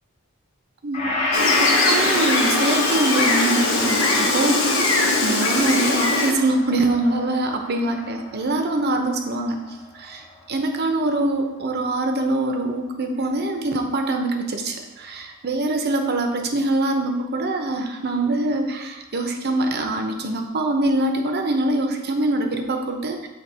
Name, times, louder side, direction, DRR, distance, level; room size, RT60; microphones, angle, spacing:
voice 1, 0.8-1.2 1.6-23.3, right 2 dB, 50° right, 4 dB, 0.7 m, -24 dB
Gong, 0.9-9.4 9.7-9.9, left 2 dB, 30° left, 1.2 m, -28 dB
Gull seagull, 1.3-6.3, left 2 dB, 65° left, 1.0 m, -21 dB
7.7 x 3.0 x 4.2 m, 1.0 s
head